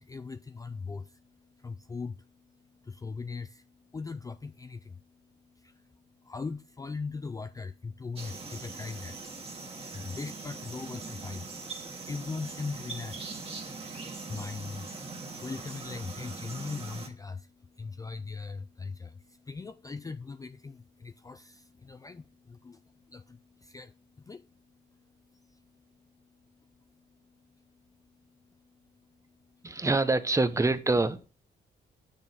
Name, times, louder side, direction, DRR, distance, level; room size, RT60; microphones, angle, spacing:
voice 1, 0.0-29.8, left 4 dB, 20° left, 0.3 m, -41 dB
sound 1, 8.2-17.1, right 3 dB, 35° right, 1.8 m, -41 dB
voice 2, 29.6-31.3, right 3 dB, 15° right, 0.7 m, -25 dB
6.8 x 6.3 x 4.1 m
cardioid pair, 90°, 18 cm